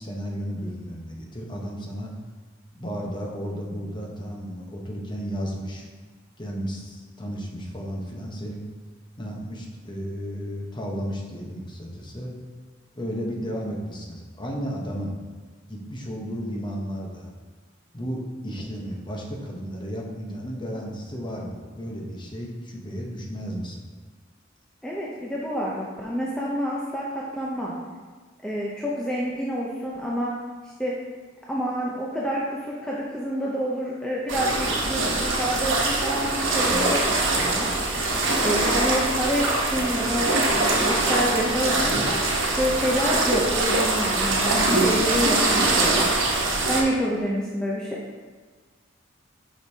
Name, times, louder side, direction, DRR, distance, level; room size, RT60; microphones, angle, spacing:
voice 1, 0.0-2.1 2.7-5.9 6.4-8.6 9.2-12.3 12.9-15.2 15.7-17.3 17.9-23.9, equal, 25° left, -1 dB, 1.0 m, -33 dB
voice 2, 24.8-27.7 28.4-30.3 30.8-30.9 31.5-37.7 38.4-42.0 42.6-46.1 46.6-48.0, equal, 5° left, -5 dB, 0.6 m, -28 dB
sound 1, 34.3-46.8, right 2 dB, 75° right, 1.2 m, -23 dB
7.8 x 5.3 x 2.8 m, 1.5 s
head